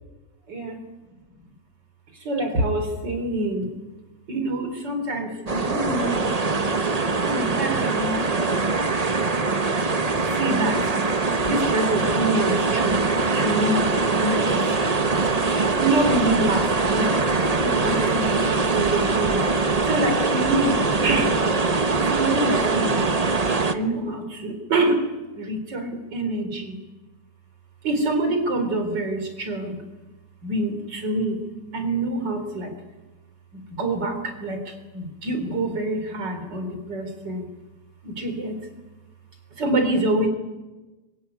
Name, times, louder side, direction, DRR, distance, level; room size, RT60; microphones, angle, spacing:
voice 1, 0.5-0.8 2.1-3.7 4.3-6.3 7.2-8.8 10.2-10.9 11.4-13.9 14.2-14.8 15.8-17.2 17.6-19.4 19.8-21.4 22.0-23.1 23.7-26.8 27.8-29.8 30.4-31.4 31.7-32.7 33.5-37.5 38.0-38.6 39.6-40.3, right 1 dB, 80° right, 6 dB, 4.6 m, -26 dB
sound 1, 5.5-23.7, right 3 dB, 25° right, 1.0 m, -22 dB
24.5 x 23.5 x 9.6 m, 1.2 s
omnidirectional pair, 1.9 m